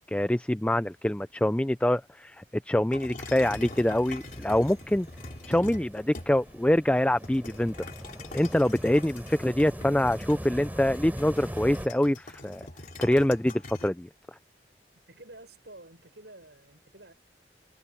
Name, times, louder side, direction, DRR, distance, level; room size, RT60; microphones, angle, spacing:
voice 1, 0.1-5.1 5.5-7.8 8.3-12.6 13.0-14.1, left 1 dB, 5° left, 0.4 m, -25 dB
sound 1, 2.9-6.6 7.2-13.9, left 2 dB, 45° left, 2.6 m, -43 dB
sound 2, 3.4-11.9, equal, 10° right, 7.7 m, -42 dB
voice 2, 14.9-17.1, right 2 dB, 75° right, 6.6 m, -50 dB
head